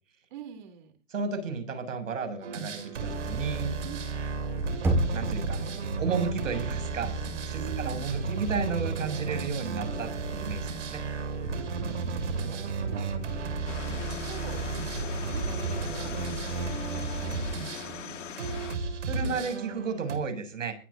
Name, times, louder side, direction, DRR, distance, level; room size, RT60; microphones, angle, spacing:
voice 1, 0.3-0.9 3.8-4.0 7.6-8.1 11.7-13.4 13.8-14.0 14.3-18.2 19.1-19.5, right 9 dB, 40° right, 7 dB, 3.7 m, -46 dB
voice 2, 1.1-3.7 5.1-5.6 6.0-7.1 7.5-11.0 12.9-13.1 19.1-20.8, right 5 dB, 90° right, 9 dB, 7.2 m, -33 dB
sound 1, 2.4-20.2, right 4 dB, 70° right, 7.8 m, -33 dB
Knock, 4.8-5.8, right 1 dB, 5° right, 1.9 m, -27 dB
sound 2, 13.7-18.8, left 9 dB, 70° left, 2.7 m, -40 dB
22.0 x 15.0 x 2.8 m, 0.35 s
hypercardioid pair, 170°, 38 cm